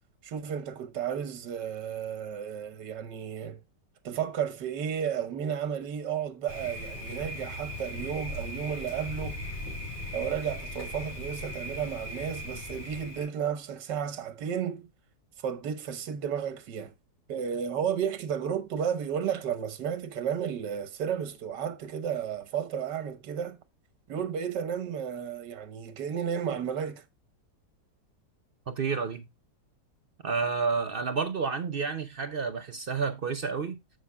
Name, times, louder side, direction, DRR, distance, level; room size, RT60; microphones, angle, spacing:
voice 1, 0.2-3.6 4.0-9.5 10.1-14.9 15.4-16.9 17.3-23.6 24.1-27.0, right 8 dB, 75° right, 1.7 m, -33 dB
Thunder, 6.5-13.3, left 1 dB, 10° left, 3.2 m, -38 dB
voice 2, 28.7-29.3 30.2-33.8, right 5 dB, 60° right, 0.5 m, -30 dB
14.0 x 5.7 x 2.2 m
omnidirectional pair, 1.9 m